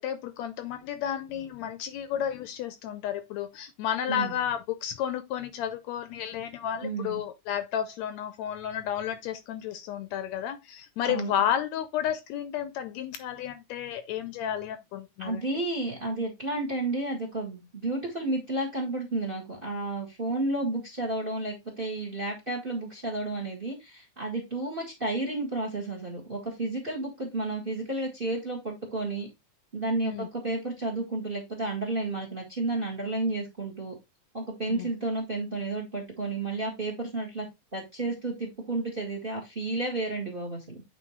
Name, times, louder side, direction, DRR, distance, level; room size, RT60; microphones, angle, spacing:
voice 1, 0.0-15.4 30.0-30.3 34.7-34.9, left 10 dB, 75° left, 1.8 m, -32 dB
voice 2, 6.8-7.2 11.1-11.3 15.2-29.3 29.7-33.9 34.3-37.5 37.7-40.8, right 2 dB, 25° right, 1.3 m, -31 dB
8.4 x 4.1 x 3.1 m
omnidirectional pair, 3.4 m